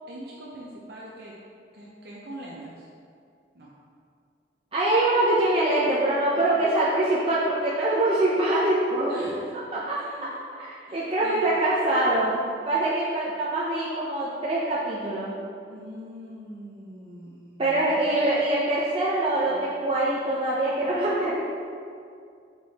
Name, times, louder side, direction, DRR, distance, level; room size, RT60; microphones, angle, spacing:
voice 1, 0.1-1.3 1.7-2.9 3.5-3.7 6.3-6.5 9.1-9.4 9.8-10.5 10.9-11.5 15.7-18.1 19.5-19.6, right 1 dB, 60° right, -6 dB, 0.8 m, -42 dB
voice 2, 4.7-9.1 9.7-12.4 12.7-15.3 17.6-21.3, right 1 dB, 30° right, -8 dB, 0.7 m, -24 dB
6.2 x 4.8 x 4.1 m, 2.4 s
head